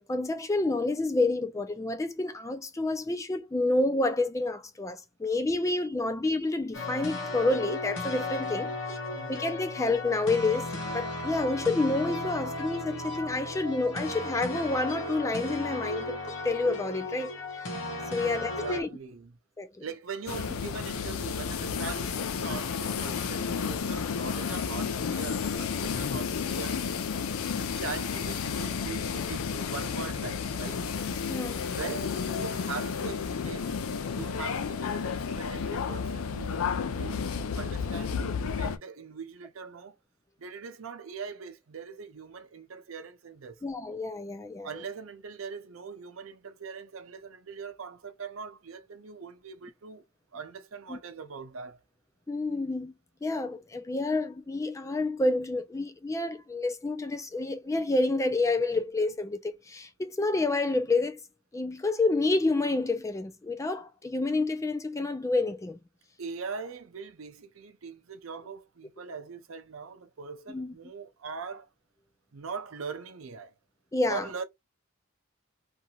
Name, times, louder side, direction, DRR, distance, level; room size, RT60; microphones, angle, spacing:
voice 1, 0.0-9.0 9.3-10.7 10.9-16.2 16.4-17.8 18.1-18.9 19.6-19.8 31.3-31.6 43.6-44.8 50.9-51.0 52.3-52.9 53.2-61.2 61.5-65.8 70.5-70.7 73.9-74.2, left 2 dB, 15° left, 0.4 m, -29 dB
sound 1, 6.7-18.8, left 2 dB, 65° left, 1.0 m, -35 dB
voice 2, 18.6-19.4 19.8-26.8 27.3-30.8 31.6-33.8 34.1-36.7 37.0-37.3 37.5-40.0 40.4-43.6 44.6-50.1 50.3-51.8 66.2-71.7 72.3-73.5 74.1-74.4, right 5 dB, 75° right, 0.6 m, -41 dB
sound 2, 20.3-38.8, left 6 dB, 85° left, 0.4 m, -32 dB
2.8 x 2.6 x 2.3 m
head